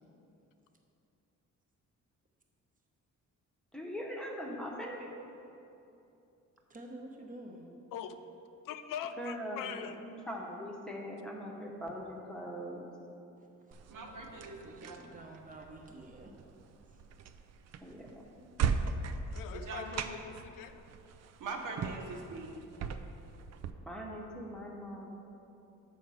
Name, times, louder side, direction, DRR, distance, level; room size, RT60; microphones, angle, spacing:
voice 1, 3.7-5.1 9.2-12.9 17.8-18.2 23.9-25.2, equal, 5° left, -2 dB, 1.0 m, -41 dB
voice 2, 6.7-7.7 13.4-16.4 16.9-17.0, right 1 dB, 25° right, 1 dB, 1.0 m, -50 dB
voice 3, 8.6-10.0 19.3-20.8, left 8 dB, 90° left, 9 dB, 0.5 m, -42 dB
sound 1, 13.7-23.7, right 6 dB, 55° right, 0.4 m, -39 dB
voice 4, 13.9-15.0 19.5-20.1 21.4-22.5, right 3 dB, 75° right, 1 dB, 1.1 m, -42 dB
7.2 x 4.6 x 6.3 m, 2.8 s
cardioid pair, 115°, 31 cm